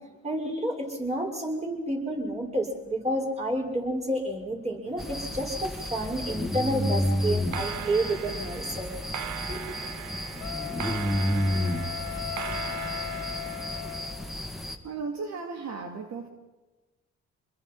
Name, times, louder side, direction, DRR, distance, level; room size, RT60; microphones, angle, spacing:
voice 1, 0.2-9.0 9.5-9.7, right 1 dB, 20° right, 1 dB, 6.3 m, -30 dB
sound 1, 4.9-6.5 7.3-14.1, right 11 dB, 85° right, 0.9 m, -39 dB
snore snoring night ambient crickets bugs white noise, 5.0-14.8, equal, ahead, 2.6 m, -31 dB
Wind instrument woodwind instrument, 10.4-14.4, left 15 dB, 65° left, 0.9 m, -38 dB
voice 2, 14.8-16.3, right 4 dB, 65° right, 4 dB, 2.7 m, -35 dB
27.5 x 21.5 x 5.7 m, 1.1 s
cardioid pair, 90°, 30 cm